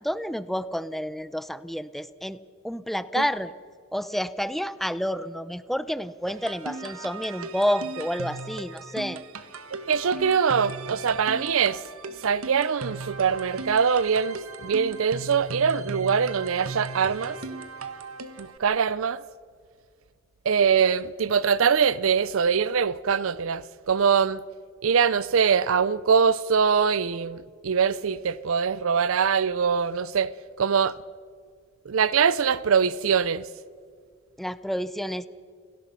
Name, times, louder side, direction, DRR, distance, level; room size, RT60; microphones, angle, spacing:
voice 1, 0.0-2.4 2.6-3.5 3.9-9.2 34.4-35.3, equal, ahead, 0.6 m, -29 dB
sound 1, 6.3-18.6, right 3 dB, 85° right, 1.5 m, -38 dB
voice 2, 9.9-11.8 12.2-17.4 18.4-19.2 20.5-24.4 24.8-30.3 30.6-31.0 31.9-33.5, right 6 dB, 70° right, 0.5 m, -23 dB
30.0 x 17.5 x 5.7 m
head